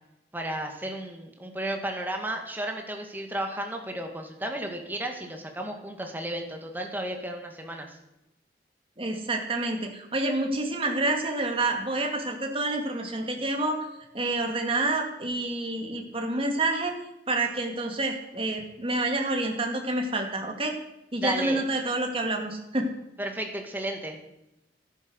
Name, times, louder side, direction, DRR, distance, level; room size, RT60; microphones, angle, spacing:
voice 1, 0.3-8.0 21.2-21.6 23.2-24.2, right 1 dB, 10° right, 3 dB, 1.9 m, -33 dB
voice 2, 9.0-13.9 14.1-16.9 17.3-20.8 21.1-22.9, right 2 dB, 30° right, 3 dB, 2.2 m, -28 dB
14.5 x 10.5 x 6.4 m, 0.91 s
head